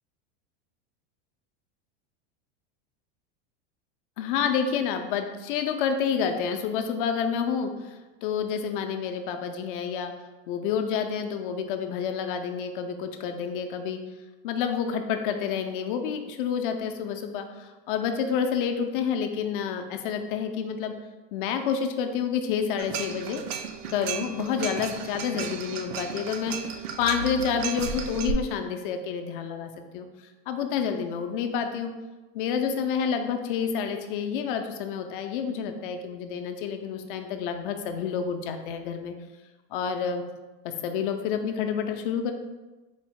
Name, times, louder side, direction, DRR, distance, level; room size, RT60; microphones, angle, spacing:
voice 1, 4.2-10.1 10.5-14.0 14.4-20.9 21.3-23.4 23.9-26.6 27.0-30.1 30.5-31.9 32.3-39.1 39.7-40.2 40.8-42.3, left 7 dB, 55° left, 6 dB, 0.5 m, -29 dB
sound 1, 22.8-28.3, right 7 dB, 70° right, 0.5 m, -34 dB
4.1 x 2.1 x 4.5 m, 1.2 s
supercardioid pair, 165°, 31 cm